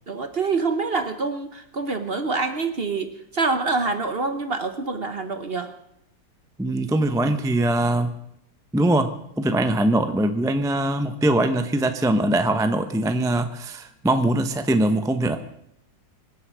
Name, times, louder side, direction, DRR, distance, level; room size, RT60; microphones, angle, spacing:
voice 1, 0.1-5.7, right 4 dB, 40° right, 8 dB, 1.0 m, -26 dB
voice 2, 6.6-8.1 8.7-9.1 9.4-15.4, right 1 dB, 5° right, 8 dB, 0.5 m, -22 dB
24.5 x 8.4 x 6.3 m, 0.77 s
omnidirectional pair, 2.0 m